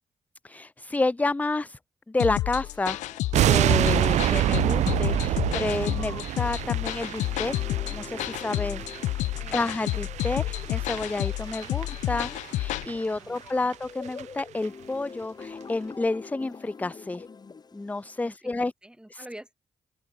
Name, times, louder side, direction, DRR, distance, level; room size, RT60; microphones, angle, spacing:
voice 1, 0.4-1.8 2.1-3.0 3.4-7.5 7.9-8.9 9.5-17.3 17.7-18.7 19.1-19.2, left 2 dB, 15° left, 0.4 m, -30 dB
sound 1, 2.2-12.9, left 16 dB, 90° left, 0.4 m, -30 dB
sound 2, 2.4-18.4, left 5 dB, 35° left, 0.9 m, -45 dB
blast Mining, 3.3-12.5 12.8-13.0 13.4-13.5 13.7-13.8 14.1-14.4 14.6-14.7, right 13 dB, 80° right, 0.4 m, -27 dB
voice 2, 8.8-9.7 13.1-13.7 18.2-19.5, right 1 dB, 5° right, 5.6 m, -48 dB
open air
supercardioid pair, 60°, 12 cm